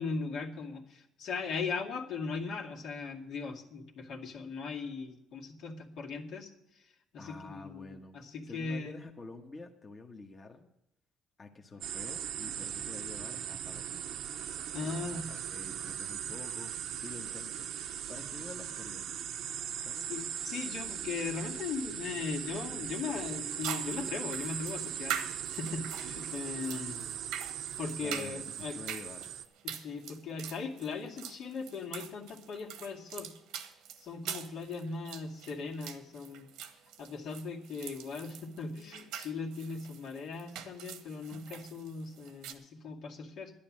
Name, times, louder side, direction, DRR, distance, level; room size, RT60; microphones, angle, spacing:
voice 1, 0.0-6.5 6.8-6.9 7.1-9.0 12.6-12.7 14.7-15.3 20.1-27.1 27.8-28.8 29.6-33.3 34.0-36.5 37.0-43.5, left 4 dB, 70° left, 0 dB, 2.1 m, -39 dB
voice 2, 7.2-8.2 8.4-10.7 11.4-14.1 14.8-19.1 19.8-20.1 28.0-29.3, left 3 dB, 30° left, 2 dB, 1.3 m, -48 dB
sound 1, 11.8-29.5, right 9 dB, 70° right, 0.9 m, -39 dB
sound 2, 23.0-23.1 23.6-42.5, right 9 dB, 85° right, 1.3 m, -43 dB
11.0 x 10.5 x 7.4 m, 0.88 s
cardioid pair, 100°, 0 cm